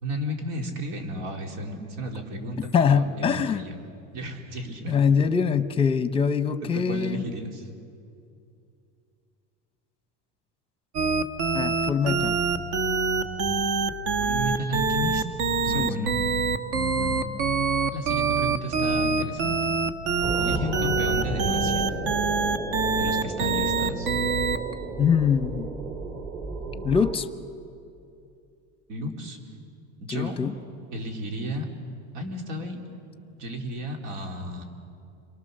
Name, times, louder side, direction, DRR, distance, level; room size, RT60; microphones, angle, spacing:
voice 1, 0.0-3.9 4.1-4.9 6.7-7.7 14.2-15.2 15.6-16.2 16.7-17.3 17.9-19.6 20.4-21.8 23.0-24.2 28.9-29.4 30.0-30.4 30.9-31.7 32.1-32.8 33.4-34.6, equal, 85° right, 2 dB, 3.6 m, -33 dB
voice 2, 2.7-3.6 4.9-7.2 11.5-12.4 15.7-16.1 25.0-25.7 26.8-27.3 30.1-30.5, left 6 dB, 15° left, 10 dB, 0.7 m, -23 dB
sound 1, 10.9-24.7, right 4 dB, 65° right, 1.6 m, -25 dB
sound 2, 20.2-27.1, right 2 dB, 35° right, 2.4 m, -33 dB
30.0 x 23.5 x 6.7 m, 2.5 s
cardioid pair, 160°, 36 cm